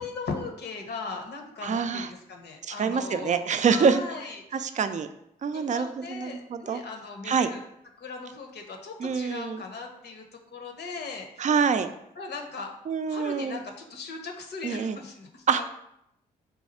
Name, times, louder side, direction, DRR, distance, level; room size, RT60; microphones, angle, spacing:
voice 1, 0.0-3.4 3.6-4.8 5.5-7.6 8.0-10.2 10.5-11.5 12.2-12.7 13.1-15.6, left 4 dB, 60° left, 3 dB, 0.8 m, -38 dB
voice 2, 1.6-2.1 2.7-4.0 4.5-5.1 5.4-6.8 7.2-7.5 9.0-9.6 11.4-11.9 12.9-13.6 14.6-15.0 15.5-15.7, right 6 dB, 40° right, 10 dB, 0.4 m, -26 dB
4.1 x 2.3 x 4.1 m, 0.78 s
hypercardioid pair, 45°, 19 cm